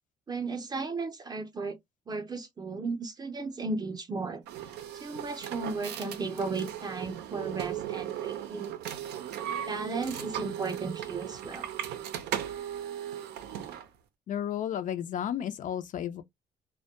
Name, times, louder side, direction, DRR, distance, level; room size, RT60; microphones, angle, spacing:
voice 1, 0.3-1.8 2.1-4.4 4.9-8.7 9.7-11.7, right 3 dB, 25° right, 0.6 m, -35 dB
sound 1, 4.5-13.9, right 10 dB, 75° right, 0.5 m, -37 dB
voice 2, 14.3-16.2, left 10 dB, 50° left, 0.4 m, -33 dB
2.1 x 2.1 x 2.7 m
cardioid pair, 110°, 17 cm